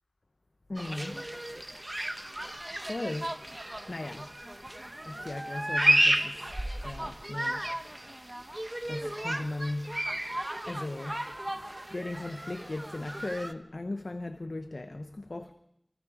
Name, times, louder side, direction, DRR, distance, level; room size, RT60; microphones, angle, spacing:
voice 1, 0.7-1.6 2.7-3.4 3.8-4.4 5.0-6.6 6.8-7.7 8.9-10.1 10.7-11.3 11.9-15.5, left 2 dB, 85° left, 0.9 m, -37 dB
sound 1, 0.8-13.5, right 1 dB, 30° right, 1.2 m, -32 dB
29.0 x 25.0 x 5.0 m
wide cardioid pair, 45°, 0 cm